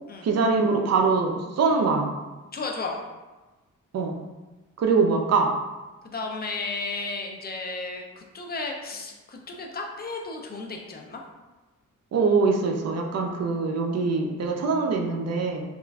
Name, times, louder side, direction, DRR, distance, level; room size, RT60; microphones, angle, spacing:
voice 1, 0.2-2.1 3.9-4.2 4.8-5.5 12.1-15.6, right 4 dB, 55° right, 2 dB, 0.5 m, -23 dB
voice 2, 2.5-3.0 6.0-11.2, left 3 dB, 30° left, 1 dB, 0.4 m, -33 dB
3.0 x 2.4 x 2.3 m, 1.2 s
wide cardioid pair, 100°, 32 cm